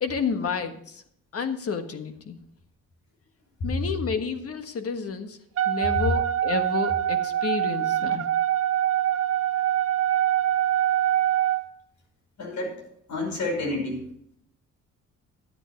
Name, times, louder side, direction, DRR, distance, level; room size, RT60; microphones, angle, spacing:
voice 1, 0.0-1.0 1.3-2.4 3.6-5.4 5.6-8.2, left 5 dB, 50° left, 8 dB, 1.5 m, -30 dB
Wind instrument woodwind instrument, 5.6-11.6, right 12 dB, 50° right, 1.1 m, -24 dB
voice 2, 12.4-14.1, left 2 dB, 70° left, 0 dB, 5.3 m, -30 dB
12.5 x 8.2 x 4.5 m, 0.69 s
cardioid pair, 90°, 30 cm